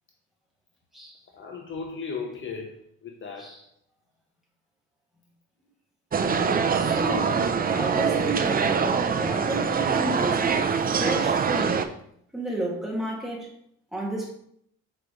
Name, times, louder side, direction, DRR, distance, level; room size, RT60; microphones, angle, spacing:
voice 1, 1.3-3.6, left 5 dB, 40° left, 0.8 m, -36 dB
sound 1, 6.1-11.9, right 5 dB, 30° right, 0.5 m, -24 dB
voice 2, 6.7-8.7 9.1-11.9 12.3-13.5 13.9-14.3, right 1 dB, ahead, 2.2 m, -33 dB
6.6 x 4.9 x 3.1 m
cardioid pair, 100°, 30 cm